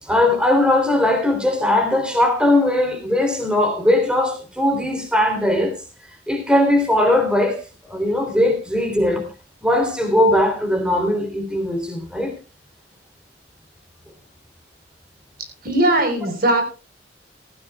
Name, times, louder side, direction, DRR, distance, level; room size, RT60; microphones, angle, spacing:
voice 1, 0.0-5.8 6.3-7.6 7.8-9.2 9.6-12.4, left 1 dB, 5° right, 3.1 m, -19 dB
voice 2, 15.6-16.6, right 1 dB, 55° right, 3.9 m, -18 dB
17.0 x 15.0 x 2.3 m
head